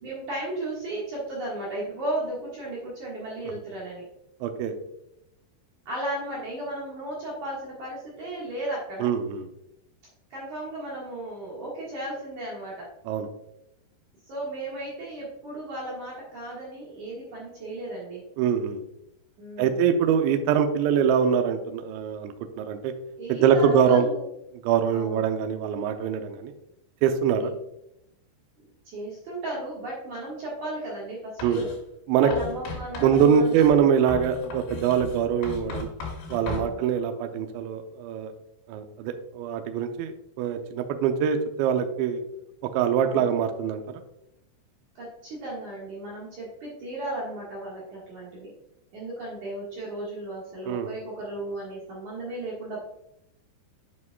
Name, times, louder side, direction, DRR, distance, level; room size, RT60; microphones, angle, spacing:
voice 1, 0.0-4.1 5.9-9.1 10.3-12.9 14.2-18.2 19.4-19.9 23.2-24.3 24.9-25.3 27.4-27.5 28.6-31.7 32.2-33.5 36.5-36.8 43.0-43.3 45.0-48.5 48.9-52.8, right 1 dB, 60° right, -6 dB, 2.1 m, -35 dB
voice 2, 4.4-4.7 9.0-9.5 13.1-13.3 18.4-18.8 19.6-22.9 23.3-24.1 24.6-26.5 27.0-27.5 31.4-31.6 32.1-32.3 33.0-35.9 36.3-38.3 38.7-42.2 42.6-43.8 50.7-50.9, right 7 dB, 85° right, 6 dB, 2.7 m, -23 dB
Writing, 31.4-31.8 32.3-36.7, left 4 dB, 75° left, 4.6 m, -37 dB
8.3 x 7.2 x 2.3 m, 0.82 s
omnidirectional pair, 5.6 m